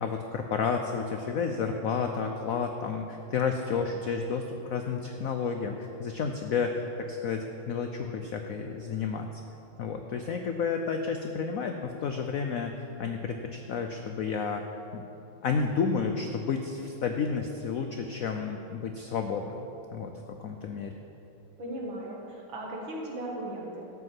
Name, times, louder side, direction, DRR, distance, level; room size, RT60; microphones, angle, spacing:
voice 1, 0.0-9.4 9.8-14.6 14.9-15.0 15.4-19.7 19.9-20.9, left 5 dB, 90° left, 5 dB, 0.7 m, -31 dB
voice 2, 21.6-23.8, right 1 dB, 75° right, -2 dB, 2.7 m, -37 dB
13.0 x 5.8 x 7.6 m, 2.9 s
omnidirectional pair, 2.2 m